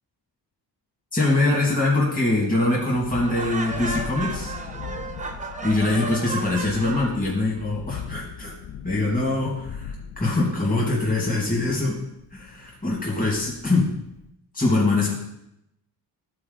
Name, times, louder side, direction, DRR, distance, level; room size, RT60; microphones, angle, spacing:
voice 1, 1.1-4.5 5.6-8.5 8.8-12.0 12.3-13.9 14.5-15.1, left 2 dB, 20° left, -4 dB, 2.0 m, -23 dB
Thunderstorm, 2.7-14.3, left 7 dB, 60° left, 0.6 m, -40 dB
Laughter, 3.2-7.2, right 3 dB, 20° right, 0.7 m, -33 dB
13.5 x 4.5 x 3.9 m, 0.81 s
wide cardioid pair, 145°, 42 cm